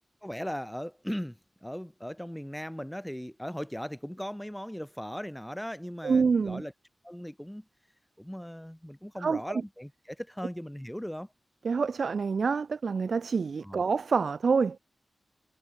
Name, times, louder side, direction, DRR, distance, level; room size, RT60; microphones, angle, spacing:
voice 1, 0.2-6.7 7.0-7.7 8.2-11.3 13.6-13.8, equal, 5° left, 2.2 m, -38 dB
voice 2, 6.0-6.6 9.2-9.6 11.6-14.8, right 5 dB, 70° right, 0.4 m, -27 dB
cardioid pair, 65°, 0 cm